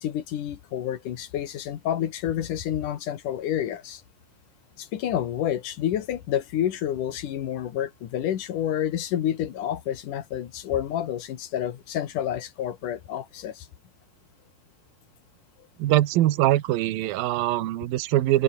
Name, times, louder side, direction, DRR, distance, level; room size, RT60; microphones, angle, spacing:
voice 1, 0.0-4.0 4.8-13.7, left 10 dB, 60° left, 2.5 m, -29 dB
voice 2, 15.8-18.4, right 15 dB, 65° right, 2.6 m, -22 dB
open air
omnidirectional pair, 5.3 m